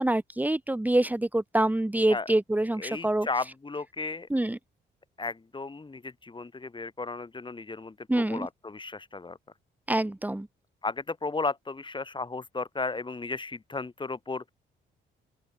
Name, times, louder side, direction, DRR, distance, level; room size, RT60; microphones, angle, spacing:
voice 1, 0.0-3.3 4.3-4.6 8.1-8.5 9.9-10.5, right 1 dB, 10° right, 1.9 m, -26 dB
voice 2, 2.8-4.3 5.2-9.4 10.8-14.5, left 3 dB, 25° left, 5.6 m, -34 dB
open air
cardioid pair, 90°, 20 cm